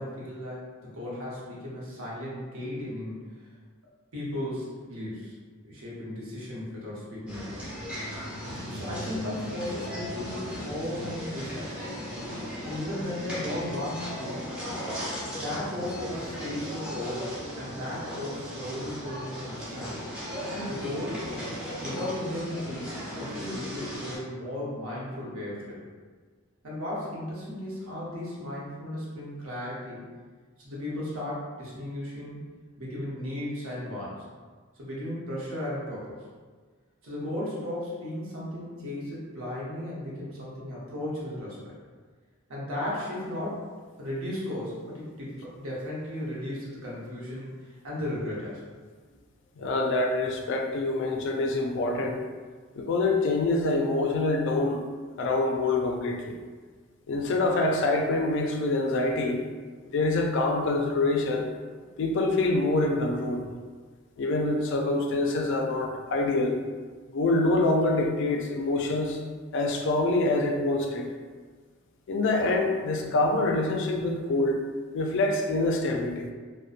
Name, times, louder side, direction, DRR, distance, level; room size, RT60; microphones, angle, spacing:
voice 1, 0.0-3.3 4.1-5.4 5.6-7.7 8.7-11.9 12.6-14.5 15.4-20.0 20.6-21.3 21.8-25.8 26.6-30.0 30.6-32.4 32.8-34.2 34.7-36.2 37.0-41.6 42.5-43.7 44.0-48.6, left 1 dB, 75° right, -6 dB, 0.8 m, -35 dB
sound 1, 7.3-24.2, equal, 5° right, 0.5 m, -36 dB
voice 2, 49.6-52.2 52.8-54.8 55.2-56.4 57.1-59.4 59.9-61.4 62.0-63.4 64.2-66.6 67.1-69.2 69.5-71.1 72.1-74.6 74.9-76.3, left 2 dB, 60° left, 2 dB, 0.3 m, -25 dB
2.6 x 2.1 x 2.4 m, 1.5 s
head